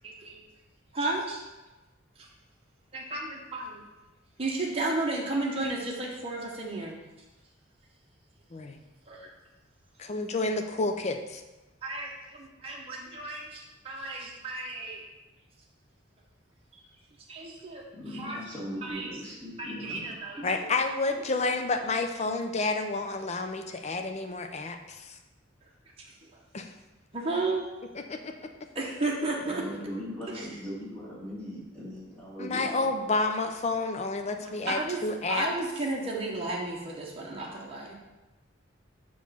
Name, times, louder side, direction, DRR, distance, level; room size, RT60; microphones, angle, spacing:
voice 1, 0.9-1.4 2.2-2.3 2.9-3.8 4.4-7.0 9.1-9.3 11.8-15.0 17.3-17.8 18.1-18.4 18.8-19.1 19.6-20.7 26.2-26.3 27.1-27.6 28.7-29.6 30.3-30.5 34.4-35.0 35.3-37.9, right 2 dB, 30° right, -3 dB, 0.9 m, -33 dB
voice 2, 10.0-11.4 20.4-25.2 26.5-26.7 28.1-28.5 32.4-35.5, left 3 dB, 35° left, 6 dB, 0.4 m, -30 dB
voice 3, 17.9-20.4 29.5-32.9, equal, 5° left, -9 dB, 1.9 m, -39 dB
6.3 x 3.1 x 5.5 m, 1.1 s
head